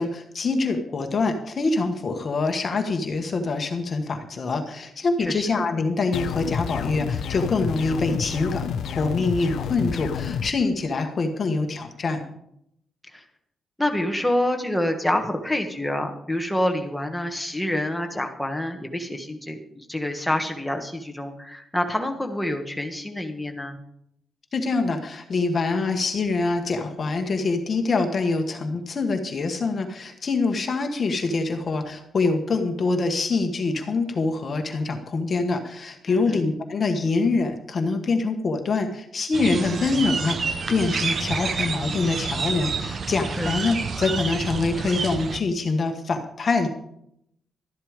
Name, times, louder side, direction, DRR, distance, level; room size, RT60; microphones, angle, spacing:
voice 1, 0.0-12.2 24.5-46.7, left 3 dB, 30° left, 4 dB, 1.3 m, -25 dB
sound 1, 6.1-10.5, left 8 dB, 65° left, 0.7 m, -29 dB
voice 2, 13.8-23.8 36.1-36.4 43.4-43.5, left 1 dB, 5° left, 4 dB, 1.5 m, -27 dB
sound 2, 39.3-45.4, right 5 dB, 35° right, 0.9 m, -28 dB
13.0 x 11.5 x 5.0 m, 0.74 s
wide cardioid pair, 170°, 0 cm